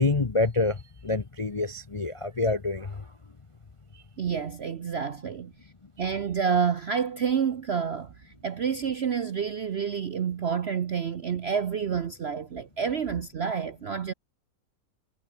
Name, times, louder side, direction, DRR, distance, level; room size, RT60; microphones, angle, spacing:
voice 1, 0.0-3.1 3.9-4.0, left 3 dB, 35° left, 0.5 m, -27 dB
voice 2, 4.2-5.5 6.0-14.1, right 7 dB, 55° right, 0.7 m, -29 dB
omnidirectional pair, 2.0 m